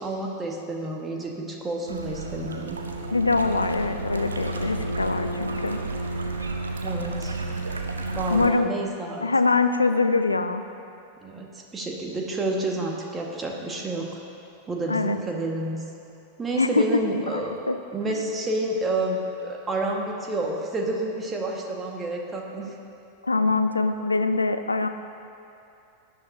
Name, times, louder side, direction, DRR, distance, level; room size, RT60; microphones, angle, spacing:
voice 1, 0.0-2.8 6.8-7.4 8.2-9.3 11.2-14.2 14.7-15.8 16.4-17.6 17.9-22.8, right 2 dB, 15° right, 0 dB, 1.7 m, -29 dB
sound 1, 1.9-8.5, right 2 dB, 75° right, 0.9 m, -31 dB
voice 2, 3.1-5.8 8.3-8.7 9.2-10.6 14.9-15.2 16.6-16.8 17.3-17.8 23.2-24.9, left 3 dB, 80° left, 9 dB, 0.6 m, -23 dB
19.0 x 11.0 x 2.8 m, 2.7 s
figure-of-eight pair, 90°, 0 cm